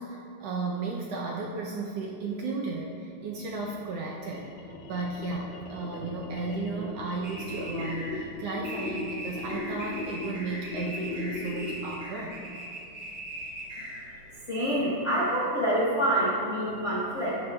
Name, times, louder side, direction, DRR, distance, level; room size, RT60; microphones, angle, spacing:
voice 1, 0.0-12.4, right 3 dB, 75° right, -2 dB, 1.5 m, -34 dB
sound 1, 3.3-12.0, left 3 dB, 85° left, 2.2 m, -38 dB
sound 2, 7.2-14.3, right 1 dB, 50° right, 3.0 m, -40 dB
voice 2, 14.4-17.4, right 1 dB, 45° left, -7 dB, 0.9 m, -26 dB
12.5 x 9.5 x 2.3 m, 2.5 s
omnidirectional pair, 3.4 m